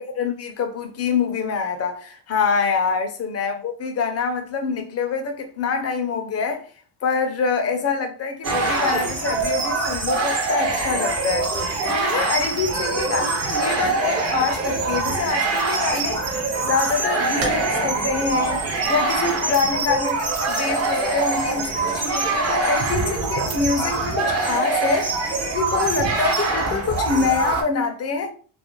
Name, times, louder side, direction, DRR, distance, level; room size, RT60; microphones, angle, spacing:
voice 1, 0.0-6.6 7.0-11.5 11.9-16.2 16.6-25.1 25.5-28.3, left 5 dB, 30° left, 0.4 m, -25 dB
sound 1, 8.4-27.6, right 3 dB, 30° right, 0.5 m, -24 dB
sound 2, 17.4-22.9, right 2 dB, 85° right, 1.1 m, -37 dB
2.5 x 2.0 x 2.9 m
cardioid pair, 145°, 49 cm